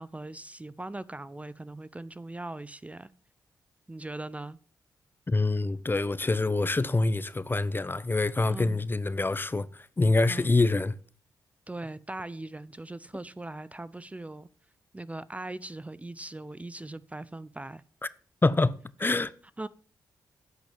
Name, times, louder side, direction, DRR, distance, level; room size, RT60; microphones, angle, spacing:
voice 1, 0.0-3.1 3.9-4.6 8.5-8.8 10.3-10.5 11.7-14.5 14.9-17.8 19.6-19.7, right 2 dB, 15° right, 0.5 m, -40 dB
voice 2, 5.3-10.9 18.4-18.7 19.0-19.3, left 3 dB, 25° left, 0.7 m, -25 dB
10.0 x 6.2 x 7.2 m
supercardioid pair, 50°, 8 cm